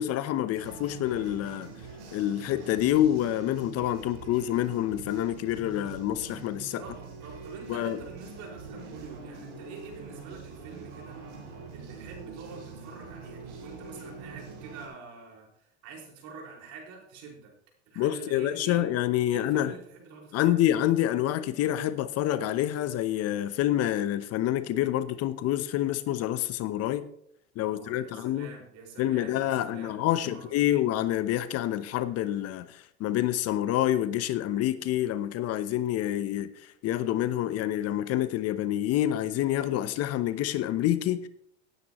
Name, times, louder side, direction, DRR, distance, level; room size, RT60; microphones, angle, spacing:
voice 1, 0.0-1.7 2.1-6.8 7.7-8.0 18.0-19.7 20.3-27.0 27.6-28.5 29.0-36.5 36.8-41.3, left 12 dB, 45° left, 0.8 m, -27 dB
sound 1, 0.5-14.9, right 4 dB, 75° right, 5.7 m, -44 dB
voice 2, 6.8-11.2 11.7-17.5 17.9-20.7 27.6-30.9, right 5 dB, 55° right, 5.2 m, -46 dB
18.0 x 9.5 x 3.1 m
hypercardioid pair, 90°, 34 cm